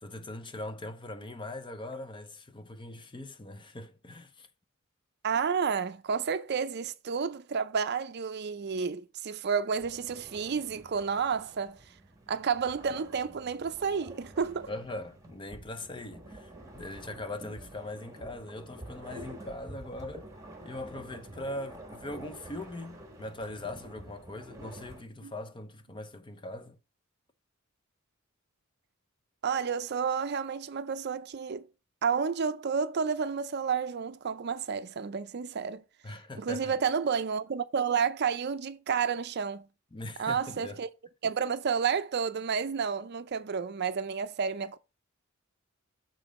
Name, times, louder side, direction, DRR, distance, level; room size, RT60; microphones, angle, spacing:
voice 1, 0.0-4.5 14.7-20.3 20.6-26.8 36.0-36.7 39.9-40.8, left 2 dB, 25° left, 0.7 m, -41 dB
voice 2, 5.2-11.8 12.3-14.7 25.2-25.3 29.4-31.7 32.0-35.8 36.4-39.7 40.2-40.9 41.2-44.8, right 6 dB, 50° right, 0.5 m, -30 dB
sound 1, 9.8-25.0, right 1 dB, 15° right, 1.3 m, -48 dB
7.0 x 3.8 x 5.2 m
head